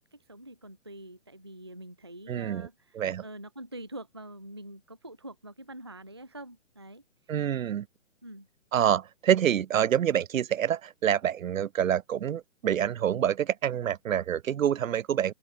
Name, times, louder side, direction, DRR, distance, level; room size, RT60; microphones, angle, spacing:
voice 1, 0.0-3.0 3.2-7.0 8.2-8.5, right 1 dB, 20° right, 0.4 m, -45 dB
voice 2, 2.3-2.7 2.9-3.2 7.3-7.9 8.7-15.3, right 9 dB, 85° right, 0.8 m, -27 dB
open air
hypercardioid pair, 165°, 39 cm